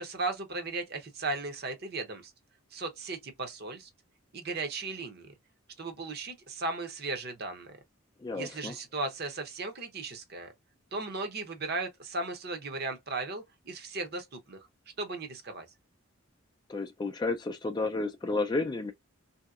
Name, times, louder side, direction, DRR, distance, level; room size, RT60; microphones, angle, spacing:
voice 1, 0.0-2.3 2.7-3.9 4.3-5.3 5.8-7.8 8.3-10.5 10.9-14.6 15.0-15.7, right 3 dB, 45° right, 0.7 m, -36 dB
voice 2, 8.2-8.8 16.7-18.9, left 3 dB, 20° left, 0.3 m, -31 dB
3.2 x 2.8 x 2.3 m
head